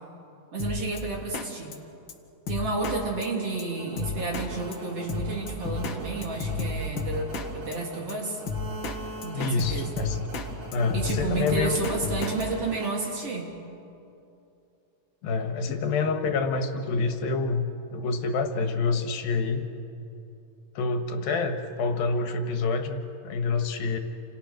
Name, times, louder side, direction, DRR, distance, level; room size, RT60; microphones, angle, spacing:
voice 1, 0.5-1.8 2.5-8.4 9.2-9.9 10.9-13.5 15.7-15.8, right 3 dB, 45° right, 0 dB, 4.0 m, -31 dB
Drum kit, 0.6-1.0 1.3-1.5 1.7-1.8 2.1-2.2 2.5-3.0 3.2-3.3 3.6-3.7 4.0-4.5 4.7-4.8 5.1-6.0 6.2-7.5 7.7-7.8 8.1-8.2 8.5-9.0 9.2-10.5 10.7-12.4, left 4 dB, 45° left, 1.8 m, -31 dB
sound 1, 3.2-13.6, right 2 dB, 80° right, 4.9 m, -43 dB
voice 2, 9.3-10.3 10.7-11.8 15.2-19.6 20.8-24.0, left 4 dB, 85° left, 6 dB, 3.3 m, -27 dB
28.5 x 28.0 x 6.6 m, 2.8 s
omnidirectional pair, 4.1 m